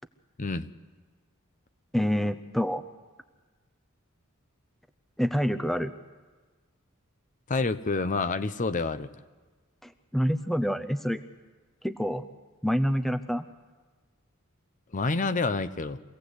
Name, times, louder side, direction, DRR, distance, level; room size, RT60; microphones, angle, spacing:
voice 1, 1.9-2.8 5.2-5.9 9.8-11.2 11.8-12.3 12.6-13.5, equal, ahead, 10 dB, 0.7 m, -27 dB
voice 2, 7.5-9.1 14.9-16.0, left 3 dB, 35° left, 12 dB, 0.7 m, -28 dB
25.0 x 17.0 x 8.1 m, 1.4 s
head